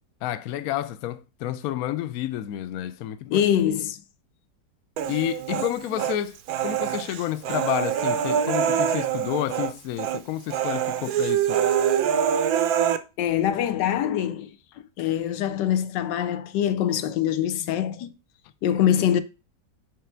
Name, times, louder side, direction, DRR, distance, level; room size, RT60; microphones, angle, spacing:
voice 1, 0.2-3.4 5.1-11.6, left 12 dB, 70° left, 0.9 m, -30 dB
voice 2, 3.3-4.0 5.5-5.6 13.2-14.5 15.0-18.1 18.6-19.2, left 10 dB, 85° left, 1.2 m, -24 dB
Human voice, 5.0-6.2 6.5-9.7 10.0-10.2 10.5-13.0, right 9 dB, 70° right, 1.0 m, -25 dB
6.6 x 3.4 x 4.4 m
omnidirectional pair, 1.9 m